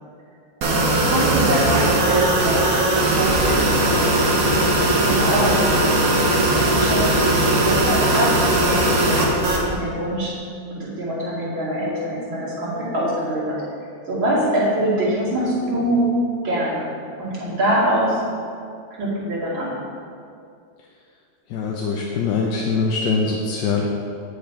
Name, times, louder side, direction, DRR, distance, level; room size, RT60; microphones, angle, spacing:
sound 1, 0.6-9.6, right 1 dB, 55° right, 1.4 m, -19 dB
voice 1, 0.6-1.8 2.1-4.0 4.4-7.3 7.6-10.3 10.7-13.6 14.1-16.1 16.4-16.9 17.2-18.2 19.0-19.8, right 1 dB, 85° right, -8 dB, 3.2 m, -24 dB
voice 2, 21.5-23.8, left 4 dB, 75° left, -1 dB, 1.3 m, -23 dB
9.1 x 6.5 x 4.4 m, 2.4 s
omnidirectional pair, 2.1 m